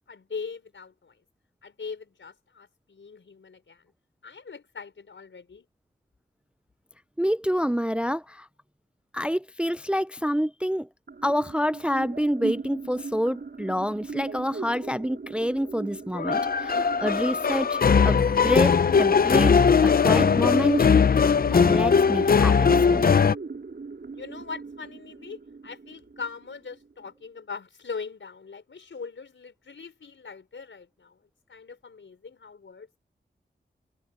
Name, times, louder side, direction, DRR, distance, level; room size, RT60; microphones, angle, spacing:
voice 1, 0.1-1.2 1.6-3.8 4.2-5.7 24.1-31.2 31.5-33.0, left 5 dB, 75° left, 4.7 m, -41 dB
voice 2, 7.2-8.5 9.1-10.9 11.2-19.6 19.8-20.9 21.5-23.1, equal, 5° right, 0.4 m, -27 dB
sound 1, 11.1-27.1, right 4 dB, 55° right, 3.0 m, -39 dB
sound 2, 16.2-23.3, left 6 dB, 50° left, 0.5 m, -20 dB
cardioid pair, 55°, 20 cm